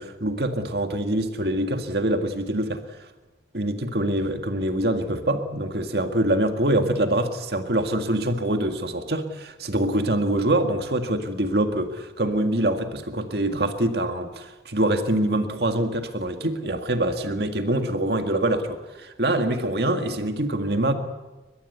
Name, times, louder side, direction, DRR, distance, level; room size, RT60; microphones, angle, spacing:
voice 1, 0.0-3.1 3.5-20.9, right 1 dB, 65° right, 6 dB, 1.9 m, -25 dB
23.5 x 21.0 x 8.2 m, 1.1 s
head